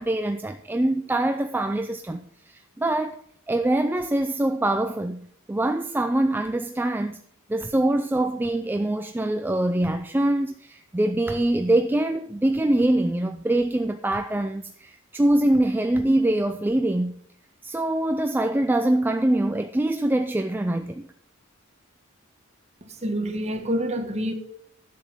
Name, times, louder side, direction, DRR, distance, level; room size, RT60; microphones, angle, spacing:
voice 1, 0.0-3.2 3.5-7.2 7.5-17.2 17.6-21.0, right 1 dB, 10° right, 0.3 m, -24 dB
voice 2, 22.8-24.3, equal, 30° right, 1.3 m, -27 dB
11.0 x 7.1 x 5.5 m
head